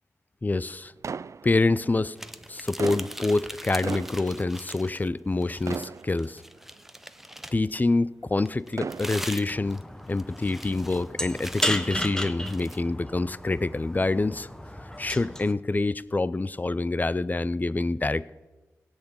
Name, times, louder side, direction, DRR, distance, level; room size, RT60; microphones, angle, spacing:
voice 1, 0.4-0.9 1.4-2.2 2.5-6.4 7.5-9.8 10.1-14.5 15.0-18.3, left 2 dB, 30° left, 18 dB, 0.5 m, -26 dB
sound 1, 1.0-2.0 2.6-5.4 5.7-6.7 7.4-7.5 8.5-9.6, right 5 dB, 60° right, 0.4 m, -37 dB
sound 2, 2.1-5.1 5.4-7.7 8.4-12.8, equal, 5° right, 0.8 m, -41 dB
sound 3, 9.5-15.5, equal, 10° left, 1.2 m, -34 dB
17.0 x 8.1 x 7.2 m, 1.2 s
cardioid pair, 45°, 6 cm